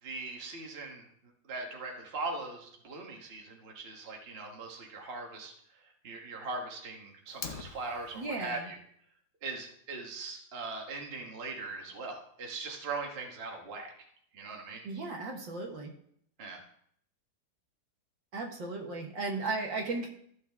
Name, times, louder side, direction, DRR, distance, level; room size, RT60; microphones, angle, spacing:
voice 1, 0.0-1.0 1.5-8.8 9.4-13.9 14.3-14.8 16.4-16.6, right 3 dB, 35° right, 1 dB, 1.3 m, -40 dB
Fire, 7.3-8.3, left 6 dB, 55° left, 0.9 m, -43 dB
voice 2, 8.2-8.7 14.8-15.9 18.3-20.1, right 3 dB, 60° right, 1 dB, 2.0 m, -35 dB
14.5 x 6.4 x 3.5 m, 0.67 s
omnidirectional pair, 2.4 m